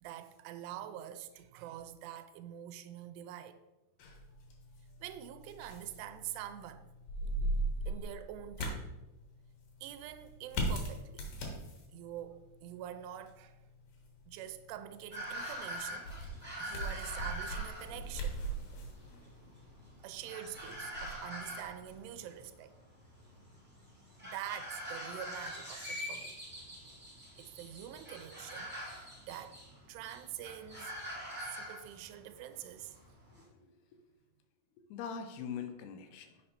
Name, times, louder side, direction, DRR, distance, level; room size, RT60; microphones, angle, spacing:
voice 1, 0.0-3.6 5.0-6.8 7.9-8.9 9.8-11.2 11.9-13.6 14.3-16.1 16.6-18.4 20.0-22.7 24.2-26.4 26.7-26.8 27.4-29.6 29.9-30.9 31.4-33.0, right 11 dB, 85° right, 2.6 m, -46 dB
sound 1, 4.0-22.1, right 1 dB, 65° left, 2.6 m, -41 dB
sound 2, 15.1-33.4, equal, 15° right, 0.3 m, -44 dB
voice 2, 33.3-34.0 34.9-36.4, left 7 dB, 80° left, 2.7 m, -43 dB
6.5 x 5.5 x 4.3 m
omnidirectional pair, 4.8 m